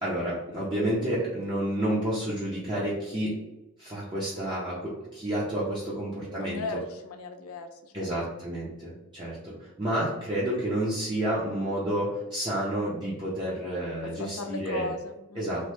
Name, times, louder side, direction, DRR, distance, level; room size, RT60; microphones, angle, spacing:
voice 1, 0.0-3.4 3.8-6.8 7.9-14.9 15.4-15.7, right 1 dB, 20° right, -7 dB, 0.5 m, -30 dB
voice 2, 6.4-8.1 14.1-15.7, left 3 dB, 75° left, 6 dB, 0.4 m, -37 dB
3.0 x 2.1 x 3.1 m, 0.96 s
head